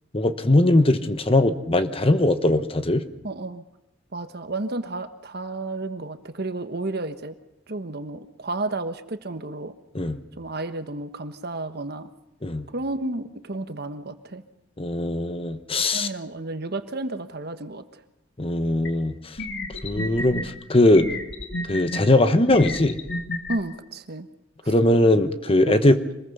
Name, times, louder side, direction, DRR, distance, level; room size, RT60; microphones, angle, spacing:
voice 1, 0.1-3.0 9.9-10.2 12.4-12.7 14.8-16.1 18.4-19.1 19.8-21.1 21.7-23.0 24.7-26.0, left 1 dB, 30° left, 10 dB, 1.1 m, -20 dB
voice 2, 3.2-3.6 4.1-7.3 7.7-9.7 10.4-12.1 12.7-14.4 15.9-18.0 23.5-24.3 24.6-24.7 25.7-26.0, right 2 dB, 60° right, 9 dB, 1.3 m, -32 dB
sound 1, 18.8-18.9 19.4-20.4 20.9-22.0 22.5-23.6, left 1 dB, 70° left, 2.7 m, -31 dB
26.0 x 21.0 x 5.5 m, 0.89 s
head